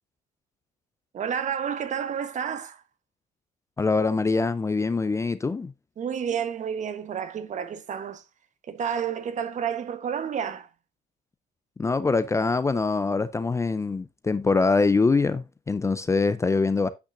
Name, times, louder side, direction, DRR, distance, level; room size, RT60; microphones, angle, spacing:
voice 1, 1.1-2.8 6.0-8.2 8.7-10.7, right 8 dB, 45° right, 1.1 m, -30 dB
voice 2, 3.8-5.7 11.8-16.9, left 4 dB, 15° left, 0.5 m, -24 dB
8.6 x 5.7 x 2.5 m
cardioid pair, 110°, 17 cm